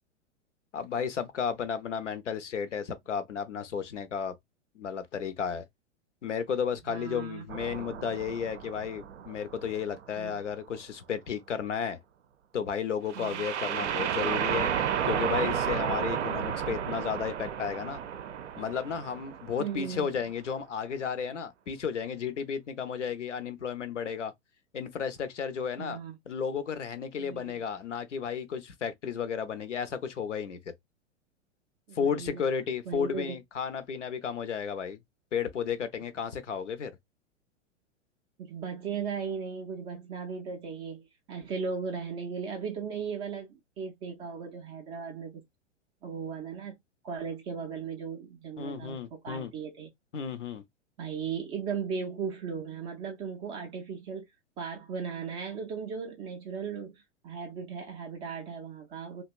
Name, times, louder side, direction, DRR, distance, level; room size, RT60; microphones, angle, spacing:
voice 1, 0.7-4.3 4.7-5.7 6.2-12.0 12.5-14.8 15.1-18.0 18.6-24.3 24.7-26.0 26.3-30.6 31.9-35.0 35.3-37.0 48.6-49.5 50.1-50.6, left 7 dB, 75° left, 0.6 m, -33 dB
voice 2, 6.9-7.4 10.2-10.4 13.1-13.5 19.6-20.1 25.8-26.2 27.2-27.6 31.9-32.5 32.9-33.4 38.4-45.4 46.0-46.8 47.0-49.9 51.0-54.3 54.6-59.2, right 6 dB, 15° right, 0.3 m, -37 dB
sound 1, 7.5-10.3 13.1-20.0, right 8 dB, 70° right, 0.5 m, -32 dB
2.8 x 2.2 x 2.4 m
figure-of-eight pair, 105°, 36 cm